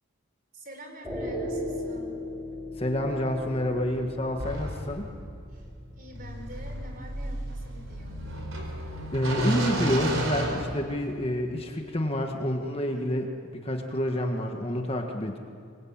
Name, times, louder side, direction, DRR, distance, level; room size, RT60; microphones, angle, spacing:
voice 1, 0.5-2.2 5.5-5.7 5.9-8.3, right 1 dB, 40° right, 4 dB, 4.8 m, -46 dB
sound 1, 1.0-11.2, left 1 dB, 5° right, 3.4 m, -40 dB
voice 2, 2.8-5.1 9.1-15.4, left 1 dB, 25° left, 3 dB, 1.7 m, -29 dB
sound 2, 4.4-11.3, right 1 dB, 65° right, 5.1 m, -32 dB
26.0 x 22.5 x 8.9 m, 2.4 s
head